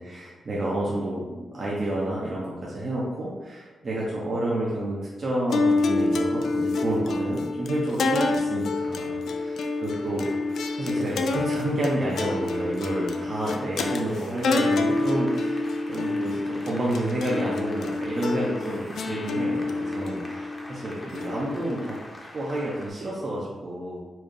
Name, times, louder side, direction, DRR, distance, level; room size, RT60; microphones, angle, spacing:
voice 1, 0.0-10.3 10.8-22.0 22.3-24.0, right 1 dB, 45° right, -6 dB, 0.8 m, -30 dB
sound 1, 5.5-22.0, left 3 dB, 80° left, 0.3 m, -27 dB
Applause, 7.6-22.9, left 1 dB, 25° left, 0.8 m, -45 dB
4.4 x 2.5 x 3.2 m, 1.3 s
cardioid pair, 85°, 0 cm